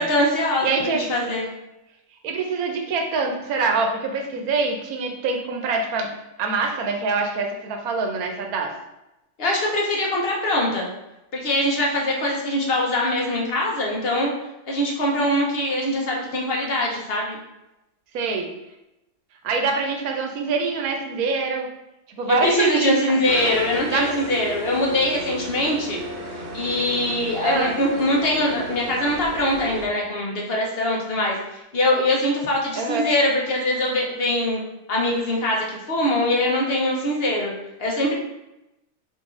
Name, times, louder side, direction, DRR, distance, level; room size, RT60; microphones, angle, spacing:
voice 1, 0.0-1.5 9.4-10.9 11.3-14.3 14.7-17.4 22.3-26.0 26.5-34.6 34.9-37.5 37.8-38.1, left 1 dB, 50° left, -2 dB, 1.0 m, -23 dB
voice 2, 0.6-1.0 2.2-6.1 6.4-8.7 18.1-18.5 19.4-21.7 22.2-23.0 23.9-24.2 27.4-27.7 32.8-33.1, right 4 dB, 90° right, 3 dB, 1.1 m, -25 dB
sound 1, 23.2-29.9, right 1 dB, 50° right, 0.7 m, -34 dB
5.4 x 2.9 x 2.5 m, 0.93 s
omnidirectional pair, 1.5 m